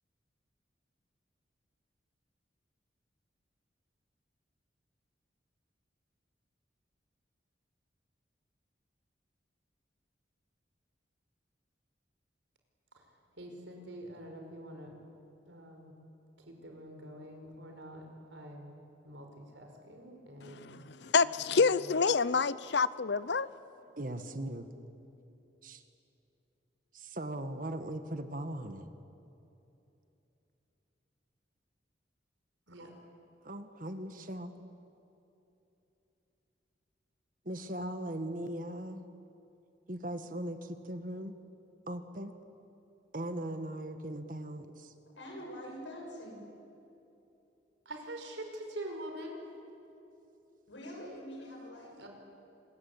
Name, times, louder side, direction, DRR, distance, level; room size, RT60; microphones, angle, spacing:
voice 1, 13.4-14.9 15.5-15.9 16.5-18.7 19.0-20.7 21.2-21.9 32.7-32.9 47.9-49.5 52.0-52.1, right 1 dB, 80° right, 5.2 m, -45 dB
voice 2, 20.4-23.5, left 5 dB, 65° left, 0.7 m, -28 dB
voice 3, 24.0-24.7 25.6-25.8 26.9-28.9 33.4-34.5 37.4-39.0 39.9-41.3 41.9-42.3 43.1-44.9, right 1 dB, 45° right, 1.5 m, -39 dB
voice 4, 45.2-46.4 50.7-51.9, equal, 80° left, 7.1 m, -44 dB
26.5 x 21.5 x 8.6 m
head